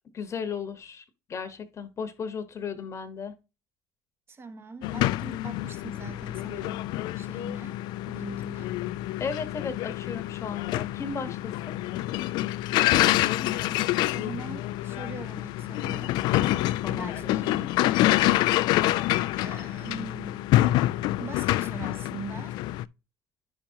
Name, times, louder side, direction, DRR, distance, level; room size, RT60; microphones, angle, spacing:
voice 1, 0.1-1.0 1.3-3.3 9.2-11.8 16.8-17.3, left 5 dB, 35° left, 1.1 m, -35 dB
voice 2, 4.3-6.9 7.1-7.8 8.1-8.7 13.0-16.2 16.9-17.8 19.4-20.4 21.2-22.6, right 4 dB, 30° right, 1.2 m, -42 dB
sound 1, 4.8-22.8, left 16 dB, 65° left, 0.4 m, -27 dB
10.5 x 5.7 x 2.7 m
supercardioid pair, 85°, 8 cm